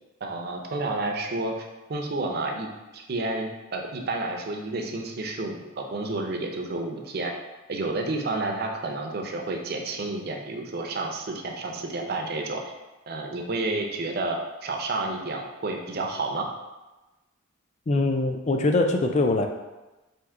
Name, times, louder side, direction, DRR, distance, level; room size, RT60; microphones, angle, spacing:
voice 1, 0.2-1.5 1.9-2.7 2.9-7.3 7.7-12.6 13.1-16.5, right 2 dB, 45° right, 2 dB, 0.5 m, -30 dB
voice 2, 17.9-19.5, left 2 dB, 30° left, 4 dB, 0.3 m, -23 dB
4.4 x 2.6 x 3.6 m, 1.1 s
head